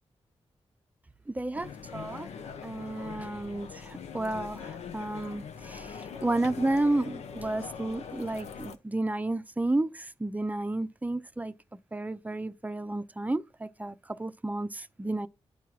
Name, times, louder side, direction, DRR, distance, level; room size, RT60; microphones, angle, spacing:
voice 1, 1.3-2.3 2.6-11.5 11.9-15.3, right 2 dB, 15° right, 0.6 m, -32 dB
sound 1, 1.5-8.8, left 6 dB, 85° left, 0.6 m, -42 dB
11.0 x 4.5 x 2.4 m
cardioid pair, 55°, 11 cm